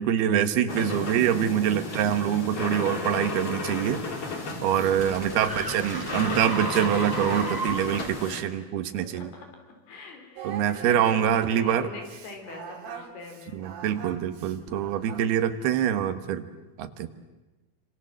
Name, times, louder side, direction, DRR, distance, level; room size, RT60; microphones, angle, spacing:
voice 1, 0.0-4.0 4.6-9.3 10.4-11.9 13.5-16.4 16.8-17.1, right 9 dB, 90° right, 10 dB, 3.4 m, -25 dB
sound 1, 0.7-8.4, left 2 dB, 35° left, 3.6 m, -34 dB
sound 2, 4.2-8.2, right 2 dB, 5° right, 2.3 m, -35 dB
voice 2, 4.8-5.9 8.3-9.5 9.9-13.6 15.6-15.8, left 3 dB, 85° left, 3 dB, 6.2 m, -44 dB
Singing, 10.4-15.4, right 8 dB, 70° right, 3.7 m, -42 dB
29.0 x 26.0 x 7.7 m, 1.1 s
omnidirectional pair, 4.4 m